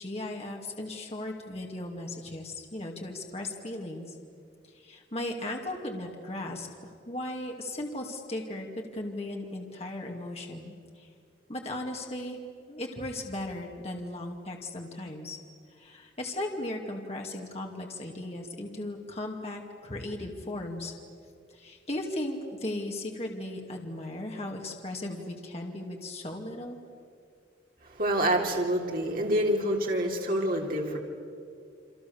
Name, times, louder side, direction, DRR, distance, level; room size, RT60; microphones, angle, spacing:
voice 1, 0.0-4.2 4.7-11.1 11.5-12.4 12.7-15.4 15.8-20.9 21.5-26.8, left 1 dB, 35° left, 1 dB, 2.4 m, -37 dB
voice 2, 27.8-31.0, right 1 dB, 50° right, 0 dB, 3.4 m, -27 dB
29.0 x 26.0 x 7.2 m, 2.3 s
head